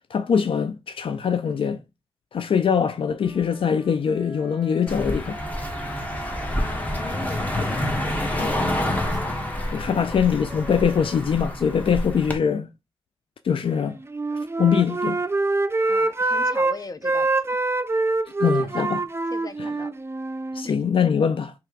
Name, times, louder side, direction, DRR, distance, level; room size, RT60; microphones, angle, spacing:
voice 1, 0.1-1.8 2.3-5.4 7.6-7.7 8.4-8.5 9.7-12.7 13.4-14.0 14.3-15.2 18.4-19.0 19.6-19.7 20.5-21.5, left 7 dB, 70° left, 0.4 m, -23 dB
Wind instrument woodwind instrument, 3.2-7.4 8.0-11.2, equal, ahead, 1.7 m, -42 dB
Car passing by, 4.9-12.4, left 1 dB, 15° left, 1.5 m, -28 dB
voice 2, 6.6-10.2 15.9-17.6 18.4-18.9 19.3-20.0 20.6-20.7, left 3 dB, 40° left, 0.7 m, -40 dB
Wind instrument woodwind instrument 2, 14.0-16.8 17.0-20.7, right 2 dB, 25° right, 0.5 m, -24 dB
3.2 x 3.0 x 4.7 m
cardioid pair, 40°, 9 cm